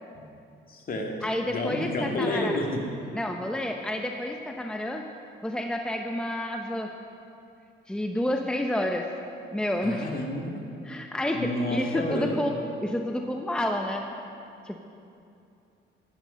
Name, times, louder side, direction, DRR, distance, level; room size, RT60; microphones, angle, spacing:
voice 1, 0.7-1.1 1.5-2.8 9.8-10.5 11.3-12.4, left 1 dB, 45° left, 0 dB, 2.2 m, -29 dB
voice 2, 1.2-2.6 3.1-5.0 5.4-6.9 7.9-9.1 9.5-10.1 10.8-12.5 12.8-14.1 14.6-14.8, left 1 dB, 5° left, 3 dB, 0.8 m, -29 dB
13.0 x 11.5 x 5.2 m, 2.6 s
cardioid pair, 90°, 20 cm